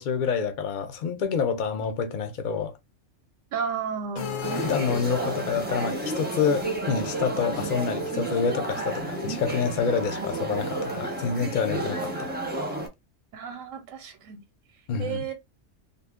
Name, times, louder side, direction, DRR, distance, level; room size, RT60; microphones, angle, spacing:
voice 1, 0.0-2.7 4.6-12.3 14.9-15.2, left 6 dB, 50° left, 0.6 m, -27 dB
voice 2, 3.5-4.3 13.3-14.4 15.0-15.3, right 6 dB, 90° right, 1.0 m, -32 dB
sound 1, 4.2-5.7, left 5 dB, 80° left, 1.1 m, -35 dB
sound 2, 4.4-12.9, right 2 dB, 10° right, 0.6 m, -31 dB
2.6 x 2.5 x 3.5 m
omnidirectional pair, 1.3 m